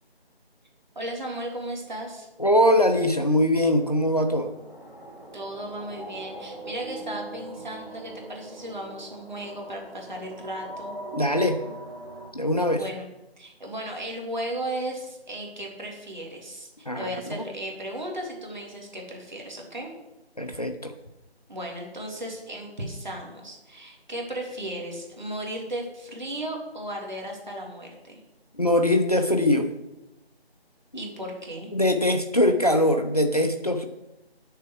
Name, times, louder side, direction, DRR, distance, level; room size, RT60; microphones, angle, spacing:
voice 1, 1.0-2.3 5.3-10.9 12.7-13.1 13.4-19.9 21.5-28.2 30.9-31.7, right 1 dB, 45° right, 0 dB, 2.5 m, -35 dB
voice 2, 2.4-4.5 11.1-11.6 12.3-12.8 16.9-17.1 20.4-20.9 28.6-29.7 31.7-33.9, left 1 dB, 40° left, 6 dB, 0.6 m, -22 dB
sound 1, 3.6-12.3, right 2 dB, 15° left, 1.6 m, -41 dB
9.4 x 6.8 x 4.5 m, 0.92 s
figure-of-eight pair, 165°, 32 cm